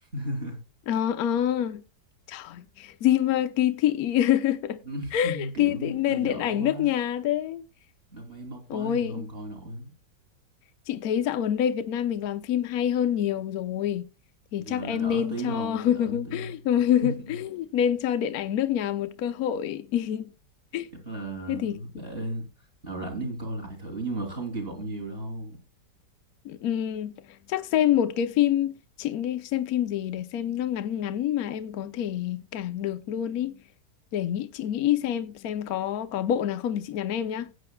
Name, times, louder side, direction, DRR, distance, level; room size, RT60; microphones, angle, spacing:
voice 1, 0.1-0.6 4.8-6.9 8.1-9.9 14.6-17.4 21.0-22.4 22.8-25.6, right 1 dB, 30° right, 3.3 m, -35 dB
voice 2, 0.9-1.8 2.3-4.8 5.1-7.6 8.7-9.3 10.9-14.1 14.5-20.3 20.7-20.9 21.5-21.8 26.4-33.6 34.1-37.5, left 10 dB, 65° left, 1.1 m, -26 dB
16.5 x 8.6 x 2.2 m
omnidirectional pair, 1.9 m